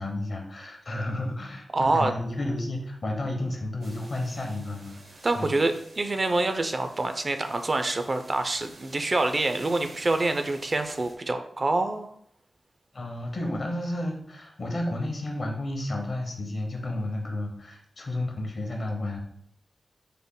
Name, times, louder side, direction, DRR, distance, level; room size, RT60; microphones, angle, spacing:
voice 1, 0.0-5.5 12.9-19.2, left 1 dB, 60° left, 2 dB, 0.7 m, -32 dB
voice 2, 1.7-2.1 5.2-12.1, right 2 dB, 45° right, 8 dB, 0.4 m, -26 dB
sound 1, 3.8-11.2, right 2 dB, 80° right, 0.8 m, -50 dB
3.6 x 2.1 x 3.7 m, 0.68 s
cardioid pair, 65°, 0 cm